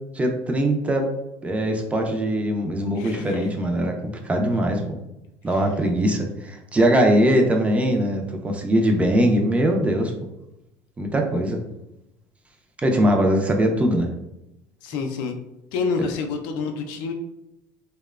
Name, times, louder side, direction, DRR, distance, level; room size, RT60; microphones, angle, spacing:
voice 1, 0.1-1.1 1.4-5.0 5.4-10.1 11.0-11.6 12.8-14.1, right 1 dB, 15° right, 3 dB, 0.4 m, -21 dB
voice 2, 2.9-3.5 5.5-5.6 14.8-15.4 15.7-17.1, left 4 dB, 75° left, 4 dB, 0.4 m, -28 dB
2.8 x 2.1 x 2.3 m, 0.89 s
supercardioid pair, 110°, 8 cm